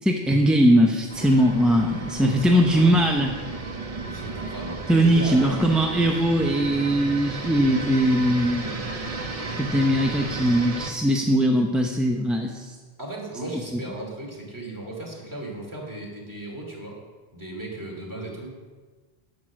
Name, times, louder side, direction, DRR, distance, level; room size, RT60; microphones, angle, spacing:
voice 1, 0.0-3.3 4.9-8.7 9.6-12.7, equal, ahead, 0 dB, 0.6 m, -20 dB
sound 1, 1.1-10.9, right 3 dB, 35° right, 1.0 m, -33 dB
voice 2, 2.2-3.0 4.0-5.9 13.0-17.0 17.3-18.5, right 1 dB, 15° right, -2 dB, 2.8 m, -36 dB
11.0 x 7.9 x 6.2 m, 1.4 s
omnidirectional pair, 1.1 m